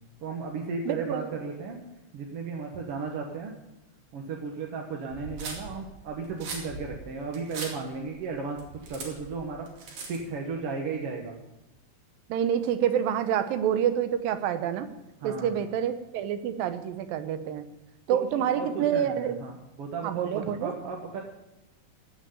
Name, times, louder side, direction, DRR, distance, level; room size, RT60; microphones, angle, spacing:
voice 1, 0.2-1.8 2.1-3.5 4.1-8.6 8.9-9.7 10.1-11.4 15.2-15.5 18.1-21.2, right 4 dB, 55° right, 0 dB, 1.9 m, -35 dB
voice 2, 0.9-1.3 12.3-14.9 15.2-17.6 18.1-19.3 20.0-20.7, right 9 dB, 90° right, 10 dB, 2.7 m, -27 dB
sound 1, 5.1-10.4, right 3 dB, 75° right, 4.2 m, -40 dB
16.5 x 6.2 x 9.4 m, 0.97 s
omnidirectional pair, 3.9 m